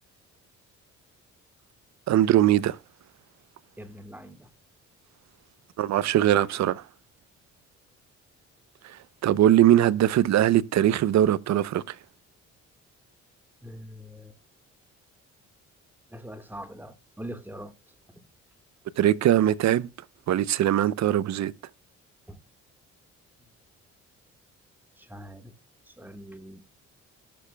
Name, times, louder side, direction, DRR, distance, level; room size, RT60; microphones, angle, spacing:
voice 1, 2.1-2.8 5.8-6.8 8.8-12.0 19.0-19.9 20.3-21.5, right 12 dB, 65° right, 0.7 m, -21 dB
voice 2, 3.8-4.5 13.6-14.4 16.1-17.8 18.1-18.3 22.3-22.4 25.0-25.5 25.9-26.6, equal, 5° right, 1.6 m, -42 dB
18.5 x 7.0 x 2.3 m
cardioid pair, 90°, 30 cm